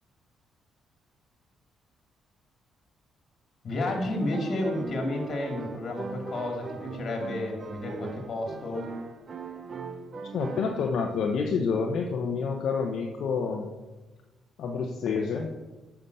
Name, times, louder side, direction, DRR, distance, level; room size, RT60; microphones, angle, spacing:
voice 1, 3.6-8.9, left 1 dB, 50° left, 2 dB, 2.4 m, -31 dB
sound 1, 4.1-10.9, right 4 dB, 45° right, 0.9 m, -40 dB
voice 2, 10.3-13.7 14.6-15.5, left 5 dB, 70° left, 1 dB, 0.9 m, -28 dB
7.5 x 5.8 x 6.7 m, 1.2 s
cardioid pair, 90°, 0 cm